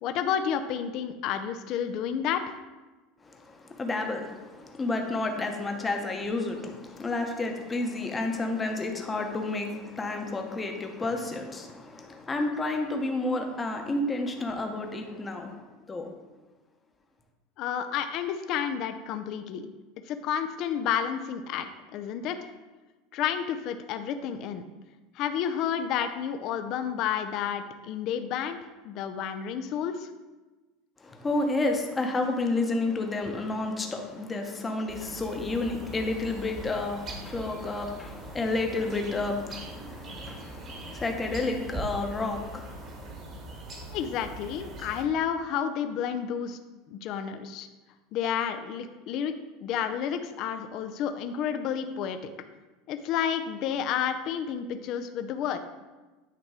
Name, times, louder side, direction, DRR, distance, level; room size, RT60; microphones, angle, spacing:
voice 1, 0.0-2.5 17.6-19.6 20.1-22.4 23.1-24.6 25.1-28.6 28.8-30.1 43.9-46.6 46.9-47.7 48.1-49.3 49.6-52.2 52.9-55.6, left 8 dB, 50° left, 8 dB, 0.5 m, -30 dB
voice 2, 3.2-16.1 31.0-43.2, left 2 dB, 15° left, 4 dB, 0.9 m, -31 dB
sound 1, 34.9-45.0, right 1 dB, 35° right, 1.4 m, -41 dB
8.9 x 3.0 x 4.7 m, 1.2 s
supercardioid pair, 130°, 0 cm